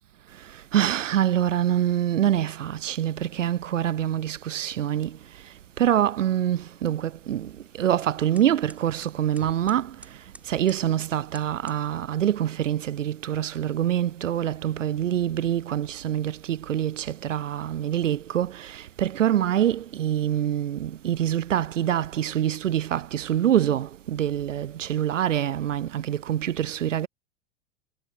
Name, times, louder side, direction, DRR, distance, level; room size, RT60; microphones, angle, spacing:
voice 1, 0.7-5.1 5.8-7.5 7.8-9.9 10.5-27.1, right 11 dB, 70° right, 0.7 m, -25 dB
sound 1, 5.1-11.9, right 1 dB, 5° right, 7.1 m, -53 dB
figure-of-eight pair, 90°, 39 cm